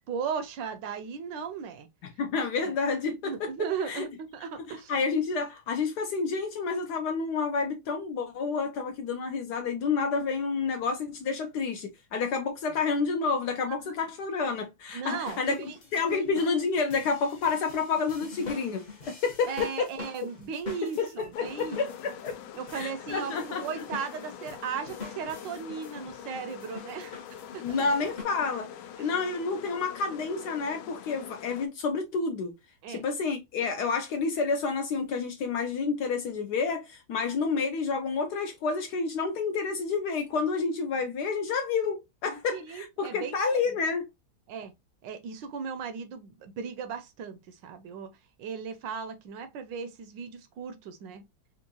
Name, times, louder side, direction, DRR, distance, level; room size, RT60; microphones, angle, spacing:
voice 1, 0.1-1.9 3.2-4.9 13.7-13.9 14.9-15.8 16.1-16.3 19.5-21.9 22.6-27.8 29.0-29.1 32.8-33.0 42.3-43.4 43.7-43.8 44.5-44.7 45.0-48.1 48.4-51.2, right 6 dB, 75° right, 1.2 m, -37 dB
voice 2, 2.2-3.5 3.9-4.0 4.9-15.6 15.9-19.9 20.8-22.3 22.7-23.8 27.6-28.7 29.0-32.5 32.9-44.1, left 4 dB, 70° left, 1.0 m, -29 dB
sound 1, 15.2-28.2, left 4 dB, 50° left, 0.5 m, -45 dB
sound 2, 21.3-31.7, left 9 dB, 90° left, 1.4 m, -44 dB
4.4 x 2.4 x 2.7 m
omnidirectional pair, 2.2 m